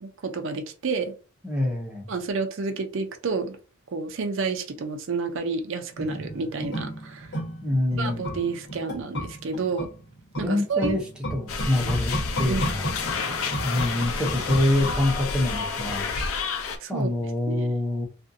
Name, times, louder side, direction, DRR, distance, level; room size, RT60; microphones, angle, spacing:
voice 1, 0.0-1.1 2.1-3.6 3.9-7.4 8.0-9.9 10.4-11.0 12.5-12.6 16.8-17.7, right 4 dB, 55° right, 0.5 m, -30 dB
voice 2, 1.4-2.1 7.6-8.3 10.4-11.0 11.3-12.9 13.6-16.1 16.9-18.1, left 1 dB, 5° right, 0.6 m, -25 dB
sound 1, 5.9-15.5 15.8-15.9, equal, 50° left, 1.1 m, -34 dB
sound 2, 11.5-16.8, left 4 dB, 65° left, 0.5 m, -29 dB
2.5 x 2.5 x 2.5 m
head